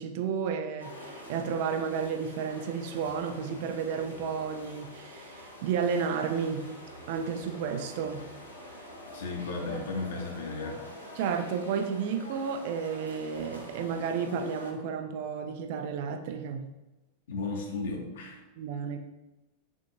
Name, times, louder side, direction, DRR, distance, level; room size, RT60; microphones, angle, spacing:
voice 1, 0.0-6.6 7.1-8.2 11.2-16.7 18.6-19.0, right 6 dB, 50° right, 5 dB, 0.5 m, -32 dB
sound 1, 0.8-14.7, equal, 90° left, 0.8 m, -46 dB
voice 2, 9.1-10.8 17.3-18.4, left 3 dB, 60° left, 1 dB, 0.9 m, -34 dB
6.0 x 2.6 x 2.8 m, 1.0 s
figure-of-eight pair, 90°, 0 cm